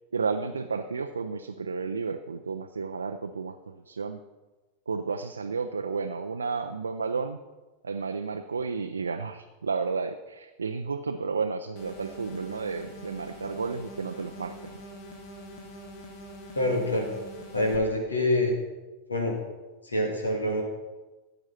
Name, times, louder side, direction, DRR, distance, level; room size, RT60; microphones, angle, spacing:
voice 1, 0.1-4.2 4.9-7.4 7.8-14.7, right 4 dB, 75° right, 6 dB, 0.5 m, -32 dB
sound 1, 11.8-17.8, equal, 45° left, 2.0 m, -44 dB
voice 2, 16.5-17.1 17.5-18.5 19.1-19.3 19.8-20.6, left 1 dB, 75° left, 1 dB, 2.7 m, -26 dB
15.0 x 9.0 x 4.3 m, 1.2 s
figure-of-eight pair, 90°, 0 cm